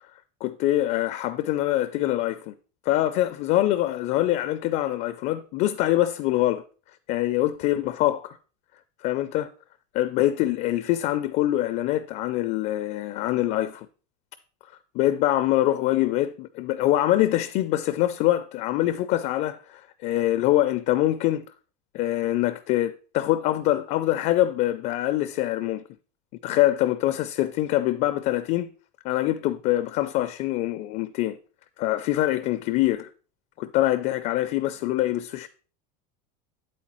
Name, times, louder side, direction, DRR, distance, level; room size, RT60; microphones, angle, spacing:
voice 1, 0.4-2.5 2.9-6.6 7.1-8.4 9.0-9.5 9.9-13.9 14.9-21.4 21.9-25.8 26.4-28.7 29.0-31.4 31.8-33.1 33.6-35.5, left 14 dB, 40° left, 0.4 m, -24 dB
8.4 x 8.0 x 3.0 m
supercardioid pair, 155°, 21 cm